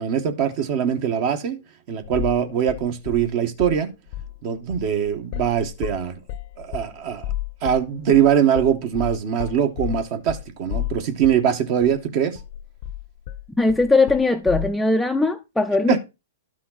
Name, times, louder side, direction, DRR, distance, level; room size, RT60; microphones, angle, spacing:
voice 1, 0.0-1.6 1.9-3.9 4.4-6.1 6.6-7.2 7.6-12.4 15.9-16.0, right 9 dB, 45° right, 1.7 m, -22 dB
sound 1, 2.0-2.4 2.7-3.8 4.1-4.4 4.7-11.5 11.8-11.9 12.3-14.7, left 13 dB, 50° left, 0.9 m, -32 dB
voice 2, 13.6-16.0, left 3 dB, 5° left, 0.7 m, -19 dB
12.0 x 5.7 x 4.2 m
hypercardioid pair, 130°, 0 cm